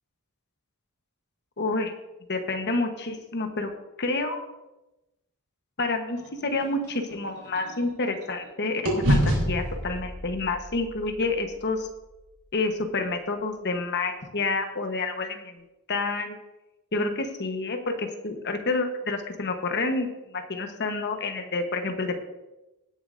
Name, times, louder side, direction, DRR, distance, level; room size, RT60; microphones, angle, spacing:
voice 1, 1.6-1.9 2.3-3.7 4.0-4.4 5.8-11.9 12.5-16.4 16.9-22.2, left 3 dB, 50° left, 5 dB, 1.2 m, -29 dB
sound 1, 6.2-8.5 8.8-13.1, equal, 70° right, 3.7 m, -29 dB
18.0 x 8.3 x 2.7 m, 1.0 s
head